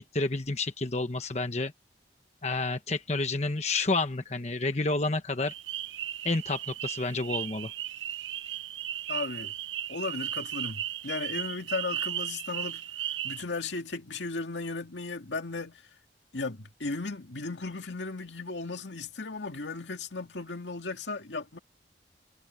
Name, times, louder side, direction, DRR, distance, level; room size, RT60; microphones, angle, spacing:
voice 1, 0.0-1.7 2.4-5.5 6.2-7.7, left 3 dB, 35° left, 1.1 m, -29 dB
sound 1, 5.5-13.4, right 11 dB, 90° right, 0.7 m, -36 dB
voice 2, 9.1-9.5 9.9-12.8 13.2-15.9 16.3-21.6, left 3 dB, 75° left, 2.1 m, -36 dB
head